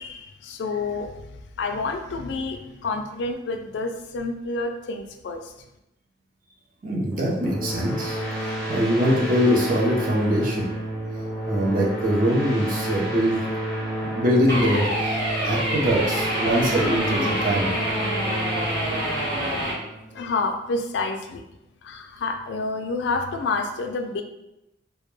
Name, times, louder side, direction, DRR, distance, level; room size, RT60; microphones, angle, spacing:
voice 1, 0.0-1.3 1.6-5.5 15.4-15.8 16.8-17.0 20.1-21.4 21.8-24.2, left 3 dB, 70° left, 5 dB, 0.3 m, -29 dB
voice 2, 6.8-8.2 8.7-10.7 11.5-13.4 14.0-17.7, equal, 45° right, -3 dB, 0.5 m, -23 dB
sound 1, 7.1-20.5, right 1 dB, 5° left, 0.5 m, -30 dB
sound 2, 14.5-19.7, equal, 65° right, 1.1 m, -26 dB
2.1 x 2.1 x 3.1 m, 0.89 s
head